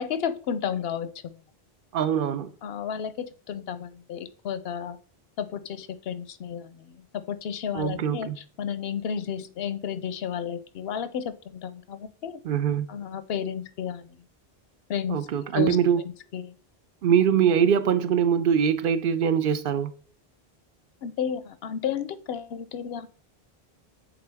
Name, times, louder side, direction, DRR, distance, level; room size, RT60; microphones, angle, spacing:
voice 1, 0.0-1.4 2.6-5.0 5.4-12.4 12.9-14.2 14.9-15.2 15.5-15.8 16.3-16.6 21.0-23.1, left 8 dB, 80° left, 0.8 m, -32 dB
voice 2, 1.9-2.5 7.7-8.4 12.4-12.9 15.1-16.0 17.0-19.9, right 8 dB, 65° right, 0.7 m, -23 dB
7.9 x 3.7 x 3.4 m
omnidirectional pair, 1.0 m